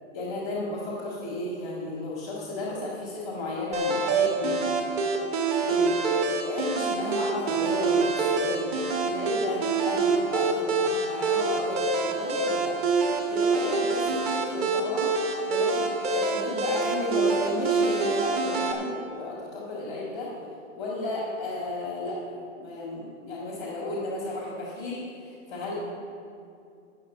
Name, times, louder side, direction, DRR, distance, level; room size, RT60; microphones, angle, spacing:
voice 1, 0.1-4.6 5.7-8.7 9.0-12.8 13.3-15.1 15.5-20.4 20.7-25.7, left 2 dB, 5° left, -12 dB, 0.3 m, -33 dB
sound 1, 3.7-18.7, right 4 dB, 30° right, 1.3 m, -26 dB
11.5 x 6.4 x 8.3 m, 2.5 s
hypercardioid pair, 165°, 39 cm